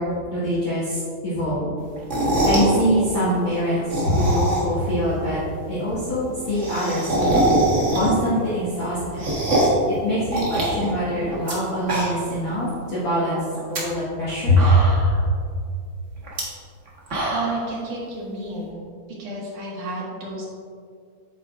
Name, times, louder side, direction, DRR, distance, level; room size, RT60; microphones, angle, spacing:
voice 1, 0.0-1.7 2.4-5.4 5.7-7.4 7.9-9.0 10.0-13.4 13.7-14.7 15.0-15.1, left 1 dB, 45° left, -10 dB, 2.1 m, -23 dB
sound 1, 2.0-2.7 3.7-4.8 5.2-5.3 5.5-5.6 5.8-5.9 6.2-8.4 8.7-9.8 10.3-11.5 11.8-12.4 12.7-12.8 13.5-13.8 14.3-14.4 14.6-15.2 16.2-16.4 16.8-17.6, right 1 dB, 45° right, 0.9 m, -23 dB
voice 2, 17.3-18.8 19.2-20.5, right 2 dB, 75° right, -5 dB, 3.2 m, -31 dB
8.5 x 8.2 x 2.5 m, 2.3 s
omnidirectional pair, 3.6 m